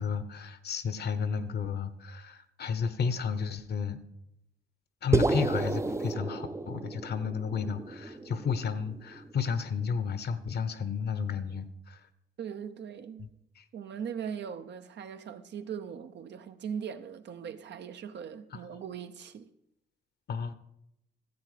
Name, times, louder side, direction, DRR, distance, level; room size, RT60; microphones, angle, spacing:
voice 1, 0.0-4.0 5.0-12.0 13.6-13.7 20.3-20.5, left 6 dB, 55° left, 0.9 m, -32 dB
sound 1, 5.1-9.5, right 3 dB, 15° right, 0.5 m, -31 dB
voice 2, 12.4-13.3 13.7-19.5, right 7 dB, 60° right, 0.8 m, -40 dB
13.5 x 7.6 x 5.0 m
cardioid pair, 90°, 20 cm